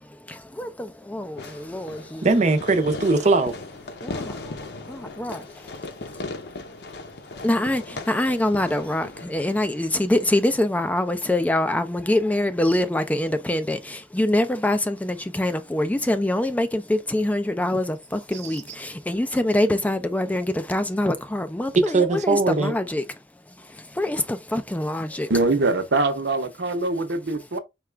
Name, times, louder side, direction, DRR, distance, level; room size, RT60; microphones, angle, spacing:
voice 1, 0.0-2.3 4.0-5.7 7.4-23.0 23.6-25.3, left 1 dB, 10° left, 0.3 m, -25 dB
Fireworks, 1.4-10.4, left 2 dB, 70° left, 0.6 m, -38 dB
voice 2, 2.2-3.6 18.3-18.5 21.8-22.7, right 3 dB, 40° right, 0.6 m, -20 dB
voice 3, 25.3-27.6, right 2 dB, 80° right, 0.8 m, -23 dB
4.7 x 2.3 x 3.2 m
head